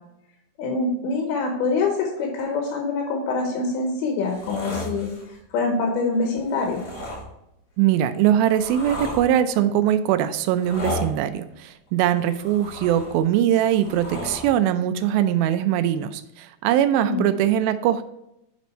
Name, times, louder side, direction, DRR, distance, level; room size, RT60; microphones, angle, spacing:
voice 1, 0.6-5.1 5.5-6.8 17.0-17.2, left 3 dB, 80° left, 1 dB, 2.8 m, -25 dB
sound 1, 4.2-5.3 6.5-7.2 8.0-9.2 10.5-11.1 12.1-13.2 13.6-14.5 15.5-15.6, left 1 dB, 55° left, 4.4 m, -34 dB
voice 2, 7.8-18.0, right 11 dB, 80° right, 11 dB, 2.2 m, -21 dB
8.4 x 4.1 x 4.3 m, 0.84 s
omnidirectional pair, 4.5 m